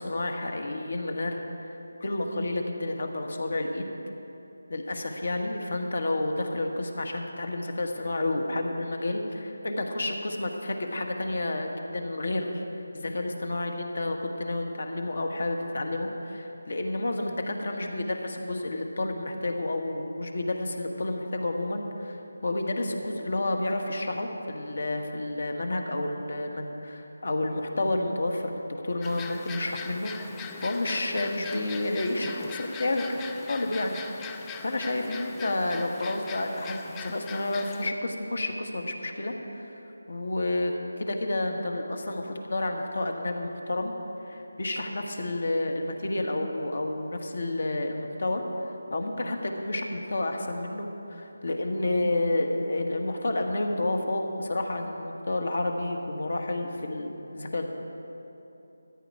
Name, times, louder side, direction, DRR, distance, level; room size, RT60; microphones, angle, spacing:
voice 1, 0.0-3.9 4.7-12.6 12.9-30.1 30.6-33.1 33.5-39.8 40.1-40.7 41.0-43.9 44.2-48.4 48.9-57.6, left 2 dB, 60° left, 3 dB, 1.5 m, -30 dB
sound 1, 29.0-37.9, left 6 dB, 10° left, 0.4 m, -41 dB
13.5 x 11.0 x 4.8 m, 2.9 s
figure-of-eight pair, 160°, 0 cm